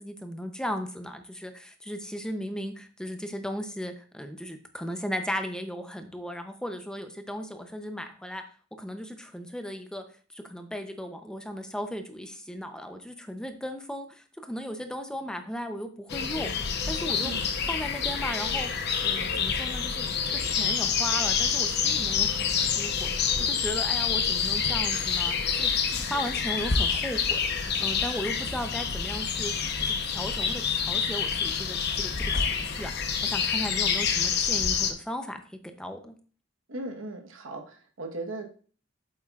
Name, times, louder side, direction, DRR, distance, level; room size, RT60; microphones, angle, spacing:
voice 1, 0.0-8.4 8.8-10.0 10.3-20.1 20.4-23.1 23.4-29.5 29.8-35.4 35.8-36.1, equal, 5° left, 6 dB, 0.6 m, -36 dB
sound 1, 16.1-34.9, left 6 dB, 55° left, 0.9 m, -27 dB
voice 2, 17.2-17.5 36.7-38.5, right 2 dB, 90° right, 4 dB, 1.3 m, -37 dB
8.5 x 7.6 x 2.4 m, 0.41 s
head